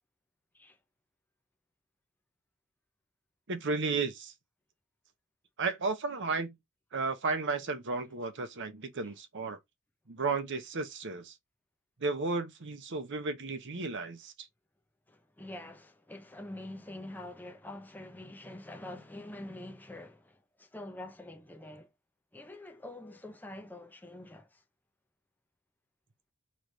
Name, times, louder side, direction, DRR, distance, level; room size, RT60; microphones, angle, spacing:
voice 1, 3.5-4.3 5.6-6.5 6.9-9.6 10.1-11.4 12.0-14.5, right 4 dB, 55° right, 0.8 m, -33 dB
voice 2, 15.1-21.9 22.3-24.6, left 1 dB, 10° left, 0.6 m, -46 dB
4.7 x 3.2 x 2.7 m
head